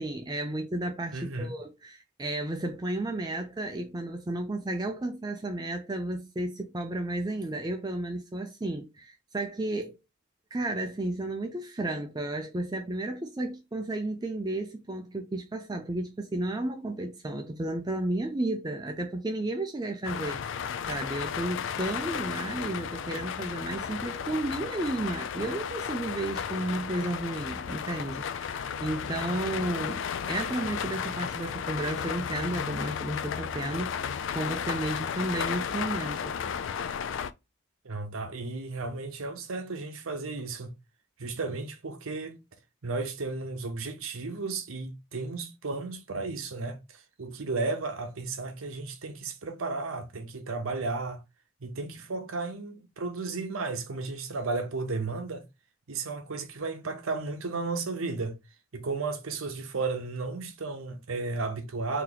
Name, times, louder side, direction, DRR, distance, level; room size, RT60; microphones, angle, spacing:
voice 1, 0.0-10.0 10.5-36.4, right 1 dB, 20° right, 0.4 m, -33 dB
voice 2, 1.1-1.5 37.8-40.7 41.2-42.4 42.8-51.2 51.6-55.4 55.9-58.4 58.7-62.0, right 3 dB, 75° right, 0.7 m, -34 dB
sound 1, 20.0-37.3, left 7 dB, 60° left, 0.3 m, -34 dB
2.9 x 2.8 x 3.8 m
head